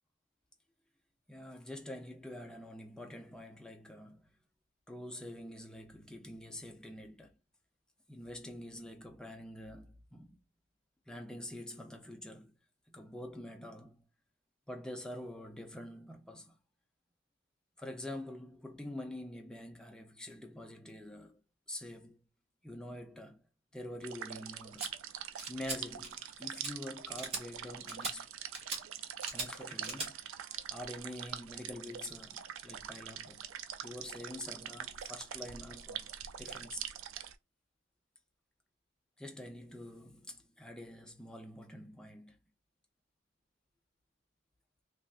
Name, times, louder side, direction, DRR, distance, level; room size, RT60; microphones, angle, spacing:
voice 1, 1.3-4.3 4.9-7.4 8.1-10.4 11.1-12.5 12.9-14.1 14.7-16.6 17.8-21.4 21.7-22.2 22.6-23.4 23.7-25.0 25.5-28.3 29.3-30.2 30.7-33.5 33.8-36.1 36.4-36.9 39.2-42.4, left 1 dB, 5° left, 0.5 m, -46 dB
sound 1, 24.0-37.3, right 9 dB, 90° right, 0.4 m, -44 dB
sound 2, 24.8-24.9 25.4-25.8 26.0-26.3 26.6-26.7 27.2-27.4 27.9-28.1 28.5-28.8 29.2-29.5 29.8-30.1, right 3 dB, 30° right, 1.0 m, -39 dB
3.2 x 2.5 x 2.3 m
head